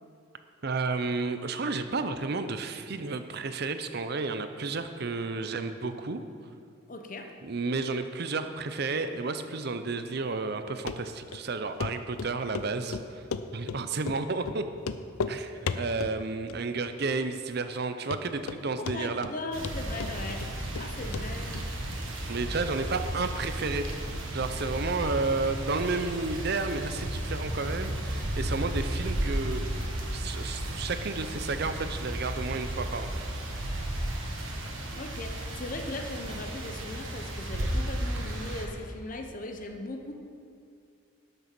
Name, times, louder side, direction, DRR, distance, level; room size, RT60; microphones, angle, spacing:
voice 1, 0.6-6.2 7.4-13.2 13.5-14.6 15.3-19.3 22.3-23.9 24.3-29.7 30.1-33.1, right 3 dB, 50° right, 9 dB, 0.6 m, -32 dB
voice 2, 6.9-7.3 18.8-20.5 20.8-21.7 35.0-40.1, left 2 dB, 40° left, 5 dB, 0.8 m, -38 dB
Run, 10.9-11.0 11.3-11.4 11.8-11.9 12.2-12.7 12.9-13.8 14.1-14.2 14.5-14.6 14.8-15.4 15.7-16.2 16.5-16.9 17.2-17.3 17.8-17.9 18.1-18.6 18.9-19.4 19.6-20.9 21.1-21.3 21.5-21.6, left 5 dB, 90° left, 0.5 m, -34 dB
sound 1, 19.5-38.7, right 1 dB, 65° right, 1.5 m, -34 dB
12.0 x 6.7 x 6.0 m, 2.4 s
head